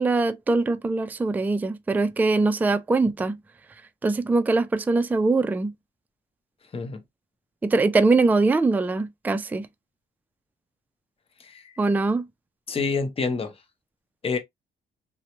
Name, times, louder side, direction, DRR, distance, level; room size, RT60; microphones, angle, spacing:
voice 1, 0.0-3.4 4.0-5.7 7.6-9.7 11.8-12.3, right 3 dB, 10° right, 0.3 m, -22 dB
voice 2, 11.4-11.8 12.7-13.6 14.2-14.4, left 4 dB, 30° left, 0.7 m, -28 dB
2.8 x 2.1 x 2.9 m
cardioid pair, 90°, 20 cm